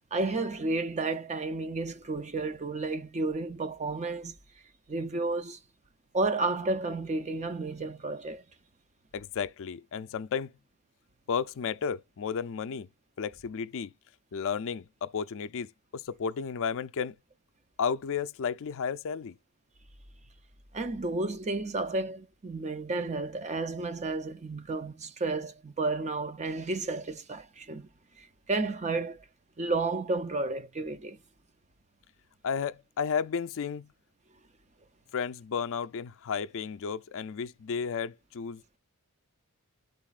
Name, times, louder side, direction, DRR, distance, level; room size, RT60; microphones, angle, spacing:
voice 1, 0.1-4.4 4.9-5.6 6.1-8.4 20.7-27.9 28.2-29.2 29.6-31.2, right 3 dB, 30° right, 0.6 m, -32 dB
voice 2, 9.1-10.6 11.3-12.9 13.2-13.9 14.3-17.1 17.8-19.4 32.4-33.9 35.1-38.6, left 6 dB, 60° left, 0.4 m, -33 dB
12.0 x 4.0 x 2.4 m
head